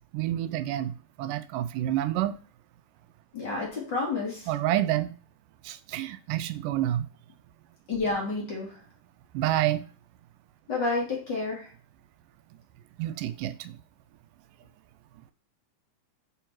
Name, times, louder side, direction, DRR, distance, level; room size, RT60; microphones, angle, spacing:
voice 1, 0.1-2.4 4.5-5.2 5.6-7.1 9.3-9.9 13.0-13.8, right 13 dB, 90° right, 2.2 m, -28 dB
voice 2, 3.3-4.5 7.9-8.7 10.7-11.7, left 3 dB, 35° left, 2.4 m, -30 dB
7.0 x 4.4 x 4.6 m
omnidirectional pair, 3.7 m